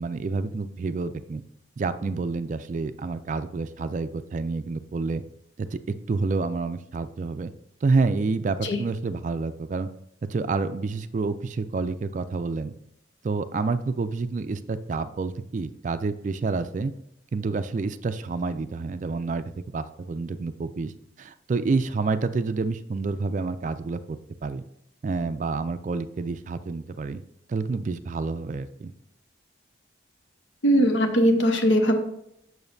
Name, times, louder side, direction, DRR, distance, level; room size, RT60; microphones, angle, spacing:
voice 1, 0.0-1.4 1.8-5.2 5.6-5.8 6.1-7.5 7.8-9.9 10.3-12.7 13.2-16.9 17.3-19.4 19.7-20.9 21.2-24.6 25.0-27.2 27.5-28.9, right 4 dB, 40° right, 12 dB, 0.3 m, -28 dB
voice 2, 30.6-32.0, equal, 75° left, 6 dB, 0.9 m, -20 dB
6.9 x 6.4 x 2.6 m, 0.78 s
head